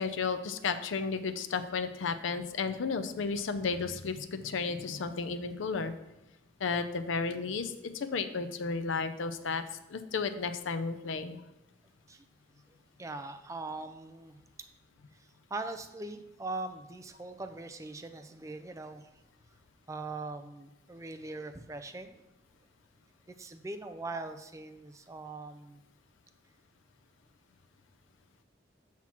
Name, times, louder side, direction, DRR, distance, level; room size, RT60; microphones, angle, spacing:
voice 1, 0.0-5.9 6.6-9.6 9.9-11.4, left 4 dB, 90° left, 9 dB, 0.5 m, -33 dB
voice 2, 13.0-14.4 15.5-19.1 19.9-22.2 23.3-25.8, right 2 dB, 15° right, 8 dB, 0.4 m, -41 dB
5.9 x 5.9 x 4.4 m, 0.96 s
head